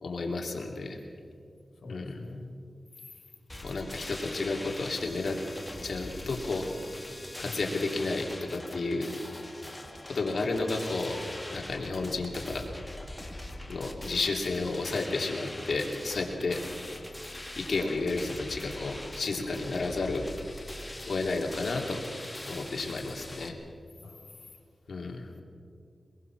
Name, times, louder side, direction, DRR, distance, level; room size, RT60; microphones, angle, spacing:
voice 1, 0.0-1.0 1.9-2.2 3.6-5.4 5.8-6.7 7.4-9.1 10.0-11.2 11.5-12.7 13.7-16.6 17.6-20.3 21.1-22.0 22.5-23.6 24.9-25.3, left 3 dB, 70° left, 1 dB, 2.8 m, -32 dB
voice 2, 1.8-2.5 7.4-7.7 24.0-24.4 25.3-25.4, left 3 dB, 90° left, 3 dB, 3.1 m, -45 dB
sound 1, 3.5-23.5, left 1 dB, 15° left, 1.9 m, -42 dB
23.5 x 21.5 x 6.0 m, 2.3 s
wide cardioid pair, 110°, 0 cm